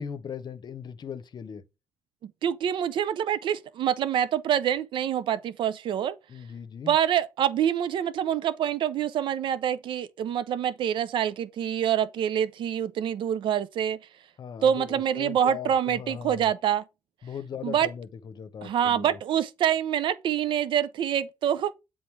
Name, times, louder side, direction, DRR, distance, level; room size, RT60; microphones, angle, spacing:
voice 1, 0.0-1.6 6.3-7.0 14.4-16.5 17.2-19.2, left 7 dB, 60° left, 0.9 m, -38 dB
voice 2, 2.2-6.2 6.9-14.0 14.6-16.8 17.6-17.9 18.6-21.7, right 9 dB, 75° right, 0.6 m, -26 dB
7.8 x 3.9 x 4.7 m
supercardioid pair, 60°, 8 cm